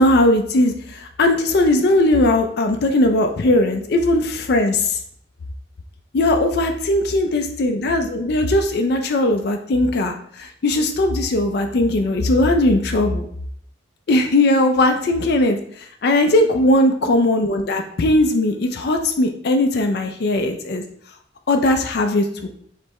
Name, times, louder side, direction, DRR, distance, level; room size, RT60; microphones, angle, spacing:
voice 1, 0.0-5.0 6.1-13.3 14.1-20.8 21.5-22.5, left 1 dB, 55° left, 5 dB, 0.4 m, -18 dB
3.3 x 3.1 x 4.5 m, 0.64 s
head